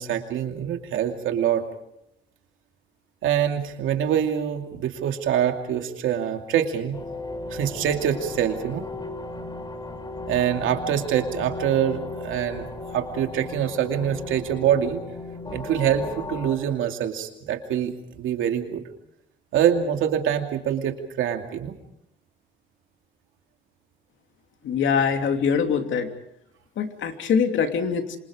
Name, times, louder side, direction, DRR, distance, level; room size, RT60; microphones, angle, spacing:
voice 1, 0.0-1.7 3.2-7.0 7.5-8.9 10.3-12.7 12.9-15.0 15.5-17.9 18.2-18.8 19.5-21.7, right 9 dB, 85° right, 5 dB, 2.6 m, -25 dB
sound 1, 6.9-16.6, left 2 dB, 20° left, 4.2 m, -36 dB
voice 2, 24.6-26.1 26.8-28.2, left 6 dB, 75° left, 5 dB, 2.8 m, -23 dB
28.0 x 26.5 x 5.0 m, 0.76 s
cardioid pair, 90°, 20 cm